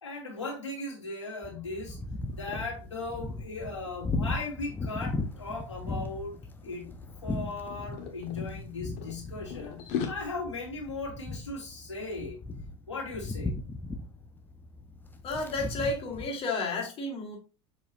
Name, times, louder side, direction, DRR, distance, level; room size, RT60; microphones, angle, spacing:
voice 1, 0.0-2.0 2.3-12.4 12.9-13.6, left 3 dB, 85° left, 2.6 m, -38 dB
sound 1, 1.4-16.3, left 2 dB, 15° left, 0.8 m, -38 dB
sound 2, 2.3-2.6 3.0-3.2 3.5-5.4 6.1-6.4 6.7-8.5 9.0-10.1, left 7 dB, 55° left, 1.5 m, -38 dB
voice 2, 15.2-17.4, left 3 dB, 40° left, 2.3 m, -32 dB
7.0 x 5.3 x 2.7 m
figure-of-eight pair, 75°, 15 cm